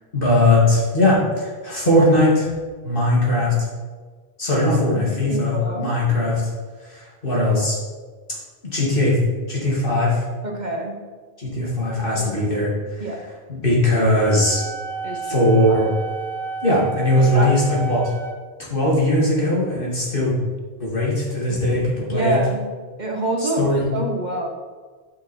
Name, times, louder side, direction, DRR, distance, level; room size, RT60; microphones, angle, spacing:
voice 1, 0.1-2.5 2.8-3.5 4.4-6.4 6.9-7.8 8.6-9.2 9.5-10.2 11.4-12.7 12.9-13.1 13.5-14.6 15.3-15.9 16.6-18.0 18.7-20.3 20.8-22.4 23.4-23.9, left 1 dB, 55° left, -5 dB, 3.0 m, -19 dB
voice 2, 5.3-6.0 10.4-11.0 12.2-12.3 13.0-13.2 15.0-15.4 15.7-15.8 17.2-17.5 22.1-22.7 23.0-24.5, right 1 dB, 45° right, 1 dB, 1.2 m, -26 dB
Wind instrument woodwind instrument, 14.2-18.4, right 5 dB, 5° left, 0.5 m, -31 dB
10.5 x 5.7 x 4.6 m, 1.5 s
omnidirectional pair, 1.1 m